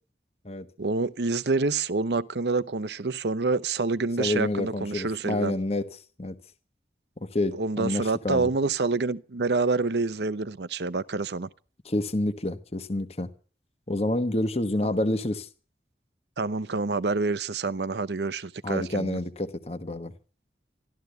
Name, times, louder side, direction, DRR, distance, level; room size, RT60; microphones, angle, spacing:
voice 1, 0.8-5.5 7.6-11.5 16.4-19.2, right 3 dB, 70° right, 0.8 m, -27 dB
voice 2, 4.2-5.9 6.2-6.4 7.2-8.5 11.8-13.3 13.9-15.5 18.6-20.1, left 1 dB, 35° left, 1.1 m, -28 dB
13.5 x 13.0 x 8.1 m
head